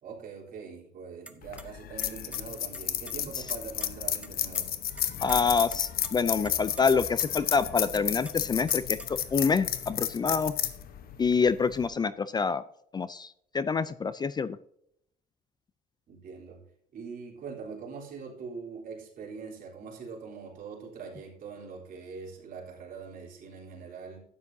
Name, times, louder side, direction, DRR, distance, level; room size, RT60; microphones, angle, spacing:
voice 1, 0.0-4.7 16.1-16.6 16.9-24.2, right 5 dB, 55° right, -2 dB, 3.6 m, -43 dB
sound 1, 1.3-1.6 2.0-2.4 2.7-3.9 4.2-4.3 4.5-4.6 5.0-5.4 5.7-6.1 6.4-6.8 7.2-7.6 7.9-9.3, right 1 dB, 5° right, 1.0 m, -46 dB
sound 2, 1.4-11.9, left 11 dB, 60° left, 1.0 m, -32 dB
voice 2, 5.2-10.5 11.2-12.6 12.9-14.6, left 5 dB, 25° left, 15 dB, 0.4 m, -27 dB
12.0 x 9.5 x 2.7 m, 0.72 s
cardioid pair, 110°, 17 cm